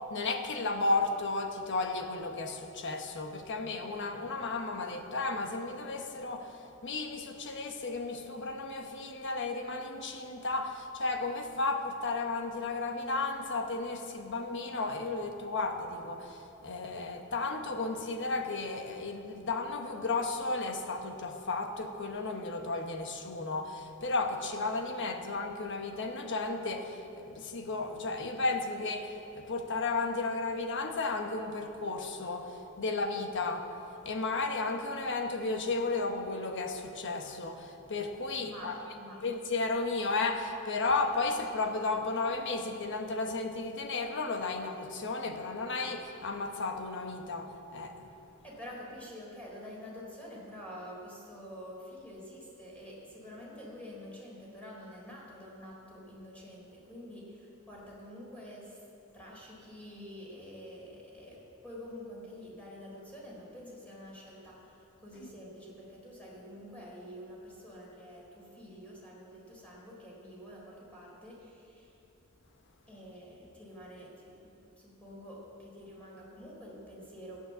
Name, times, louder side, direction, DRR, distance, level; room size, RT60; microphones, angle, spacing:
voice 1, 0.1-33.7 34.0-38.8 39.2-48.1 65.2-65.3, left 3 dB, 60° left, 4 dB, 1.3 m, -34 dB
voice 2, 38.4-39.2 48.4-58.8 59.1-71.9 72.9-74.3 74.8-77.4, equal, 5° left, -5 dB, 4.0 m, -47 dB
14.0 x 9.5 x 7.6 m, 2.9 s
head